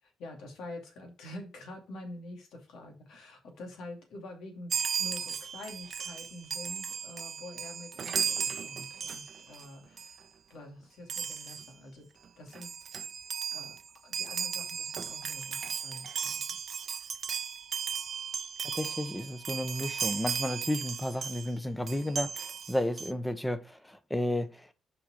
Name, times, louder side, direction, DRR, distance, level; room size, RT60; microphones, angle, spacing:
voice 1, 0.0-4.7 5.0-12.1 12.4-12.7 13.5-13.8 14.0-16.4, left 1 dB, 85° left, 2.5 m, -46 dB
Chime, 4.7-9.7 10.0-10.2 11.1-11.7 12.3-12.4 12.5-21.5 21.9-23.1, right 7 dB, 50° right, 0.6 m, -36 dB
voice 2, 18.7-24.7, left 1 dB, 5° left, 0.9 m, -32 dB
5.9 x 5.1 x 5.4 m
cardioid pair, 105°, 0 cm